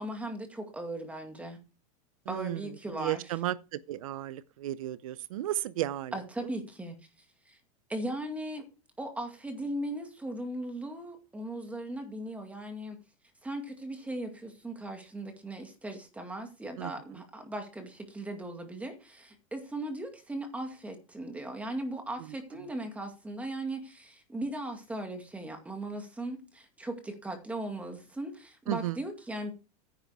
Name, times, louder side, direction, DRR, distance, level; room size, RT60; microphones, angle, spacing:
voice 1, 0.0-1.6 2.3-3.2 6.1-7.0 7.5-7.6 7.9-8.6 9.0-13.0 13.4-29.5, right 1 dB, 10° right, 2.1 m, -38 dB
voice 2, 2.3-6.2 16.8-16.9 22.5-22.7 28.7-29.0, right 14 dB, 90° right, 0.6 m, -34 dB
10.0 x 7.8 x 4.8 m
supercardioid pair, 145°, 17 cm